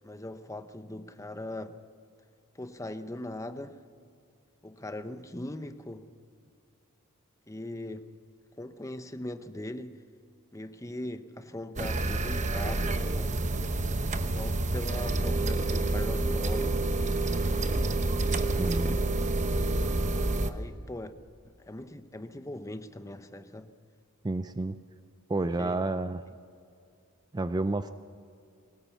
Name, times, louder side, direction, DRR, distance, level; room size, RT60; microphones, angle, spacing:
voice 1, 0.0-1.8 2.5-3.8 4.6-6.1 7.5-8.1 8.6-10.0 10.5-13.4 14.4-17.2 20.5-21.1 21.7-23.7 25.4-25.8, left 1 dB, 15° left, 10 dB, 0.8 m, -40 dB
sound 1, 11.8-20.5, right 2 dB, 35° right, 0.9 m, -28 dB
voice 2, 18.6-19.0 24.2-24.8 25.3-26.2 27.3-27.9, right 2 dB, 20° right, 11 dB, 0.4 m, -30 dB
20.5 x 19.0 x 7.1 m, 2.4 s
head